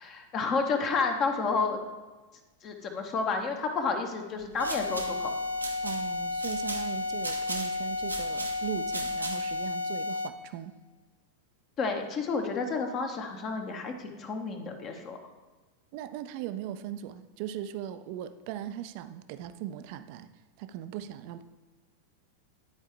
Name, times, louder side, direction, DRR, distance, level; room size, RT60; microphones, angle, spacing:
voice 1, 0.0-1.8 2.6-5.3 11.8-15.2, left 4 dB, 30° left, 4 dB, 0.9 m, -30 dB
sound 1, 4.4-9.7, right 2 dB, 80° right, 0.7 m, -40 dB
sound 2, 4.6-10.5, left 3 dB, 75° left, 0.4 m, -32 dB
voice 2, 5.8-10.7 15.9-20.3 20.6-21.4, right 11 dB, 45° right, 11 dB, 0.4 m, -39 dB
10.5 x 4.4 x 3.3 m, 1.3 s
figure-of-eight pair, 90°, 0 cm